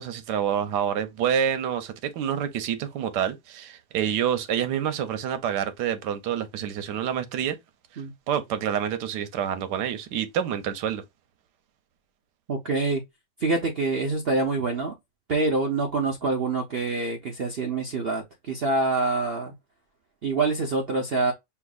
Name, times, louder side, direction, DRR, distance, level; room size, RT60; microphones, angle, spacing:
voice 1, 0.0-7.6 8.3-11.0, right 9 dB, 85° right, 1.4 m, -27 dB
voice 2, 12.5-13.0 13.4-14.9 15.3-19.5 20.2-21.3, right 3 dB, 50° right, 0.8 m, -26 dB
6.9 x 2.5 x 2.3 m
omnidirectional pair, 1.8 m